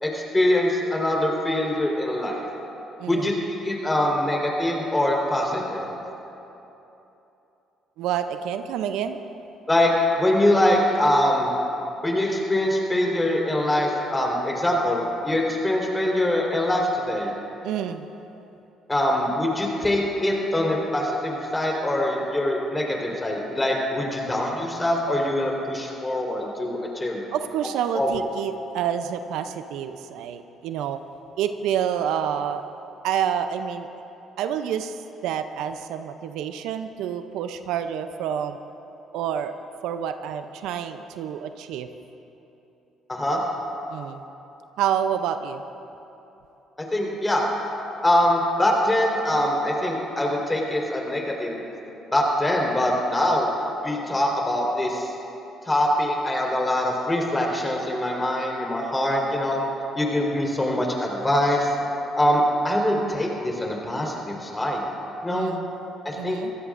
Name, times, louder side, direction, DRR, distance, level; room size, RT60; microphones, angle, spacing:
voice 1, 0.0-2.5 3.1-3.3 3.6-5.9 9.7-11.5 12.0-17.3 18.9-27.2 27.9-28.2 43.1-43.4 46.9-47.5 48.0-51.6 52.1-53.5 53.8-55.1 55.6-59.6 59.9-61.7 62.2-64.8 65.2-65.5 66.0-66.4, left 1 dB, 20° left, -1 dB, 4.1 m, -23 dB
voice 2, 3.0-3.3 8.0-9.2 17.6-18.1 27.3-31.0 31.4-32.6 33.0-33.9 34.4-38.6 39.1-39.6 39.8-41.9 43.9-44.2 44.8-45.6 65.3-65.7 66.1-66.5, right 9 dB, 80° right, 9 dB, 0.6 m, -28 dB
24.5 x 16.0 x 2.6 m, 3.0 s
supercardioid pair, 65°, 0 cm